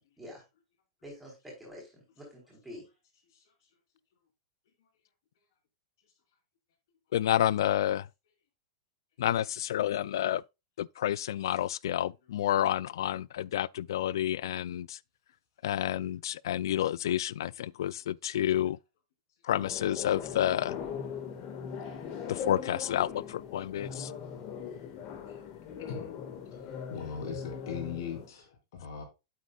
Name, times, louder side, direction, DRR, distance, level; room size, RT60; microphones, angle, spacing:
voice 1, 1.0-2.9, left 1 dB, ahead, 4.1 m, -47 dB
voice 2, 7.1-8.1 9.2-10.4 10.8-15.0 15.6-18.8 19.4-20.8 22.3-24.1, left 12 dB, 80° left, 0.3 m, -29 dB
sound 1, 19.5-28.3, left 7 dB, 35° left, 1.7 m, -40 dB
voice 3, 26.9-29.0, left 6 dB, 60° left, 3.4 m, -39 dB
8.3 x 8.2 x 2.3 m
supercardioid pair, 175°, 2 cm